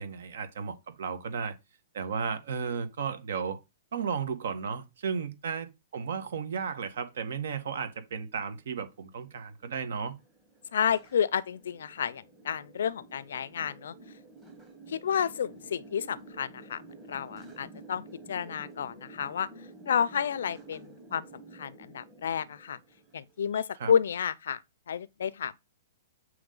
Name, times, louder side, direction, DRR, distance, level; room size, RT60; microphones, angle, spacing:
voice 1, 0.0-1.5 1.9-3.6 3.9-10.1 23.8-23.9, right 6 dB, 70° right, 1.2 m, -34 dB
sound 1, 7.9-23.7, right 2 dB, 15° right, 1.3 m, -51 dB
voice 2, 10.7-13.9 14.9-16.8 17.1-19.5 19.9-22.8 23.1-24.6 24.9-25.6, left 8 dB, 80° left, 0.4 m, -31 dB
7.9 x 3.1 x 3.8 m
hypercardioid pair, 165°, 0 cm